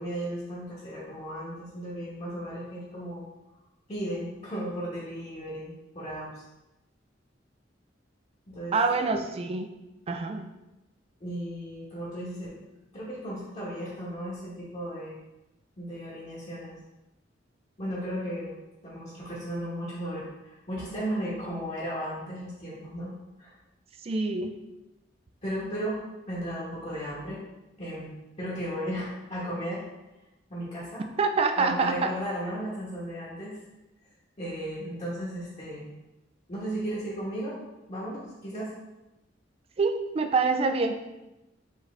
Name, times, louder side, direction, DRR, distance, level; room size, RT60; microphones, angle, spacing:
voice 1, 0.0-3.3 3.9-6.3 8.5-8.8 11.2-12.6 12.9-15.2 15.8-16.8 17.8-18.5 18.8-23.1 23.4-23.5 25.4-26.0 26.3-27.4 27.8-29.8 30.5-31.0 31.6-33.6 34.4-35.9 36.5-37.6 37.9-38.7, equal, 35° left, -8 dB, 1.2 m, -35 dB
voice 2, 8.7-9.7 10.1-10.5 24.0-24.6 31.2-32.1 39.8-41.0, right 4 dB, 30° right, 7 dB, 0.3 m, -26 dB
4.6 x 3.0 x 3.2 m, 0.97 s
head